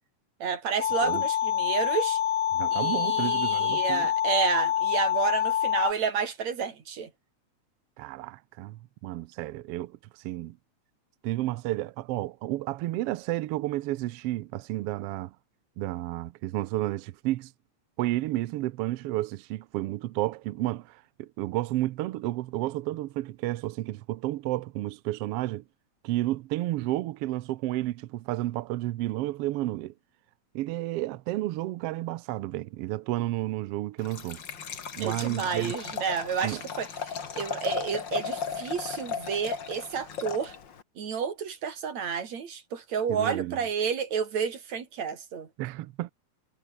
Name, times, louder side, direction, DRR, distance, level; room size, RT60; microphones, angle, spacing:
voice 1, 0.4-2.2 2.7-7.1 35.0-40.5 41.0-45.5, right 7 dB, 65° right, 4.2 m, -30 dB
sound 1, 0.8-5.9, left 10 dB, 65° left, 2.5 m, -26 dB
voice 2, 2.5-4.1 8.0-10.0 10.2-10.6 11.2-15.3 15.8-17.5 18.0-25.6 26.0-29.9 30.5-34.4 35.0-35.7 36.4-36.6 43.1-43.6 45.6-46.1, right 16 dB, 80° right, 1.4 m, -31 dB
Liquid, 34.0-40.8, left 6 dB, 40° left, 2.3 m, -36 dB
omnidirectional pair, 3.4 m